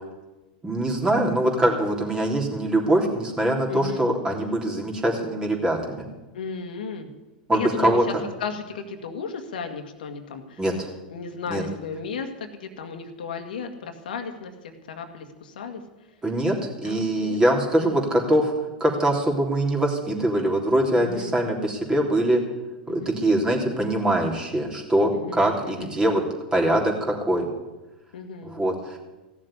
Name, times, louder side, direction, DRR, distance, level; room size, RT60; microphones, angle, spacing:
voice 1, 0.6-6.1 7.5-8.0 10.6-10.9 11.5-11.6 16.2-18.5 18.8-22.4 22.9-26.2 26.5-27.5 28.5-29.0, right 1 dB, 15° right, 0 dB, 3.5 m, -23 dB
voice 2, 3.7-4.1 6.3-7.1 7.5-10.6 11.1-15.8 16.8-17.4 17.7-18.2 21.0-21.4 22.9-23.2 25.1-26.0 28.1-28.6, left 5 dB, 75° left, 5 dB, 1.8 m, -35 dB
15.5 x 7.4 x 9.9 m, 1.1 s
hypercardioid pair, 100°, 5 cm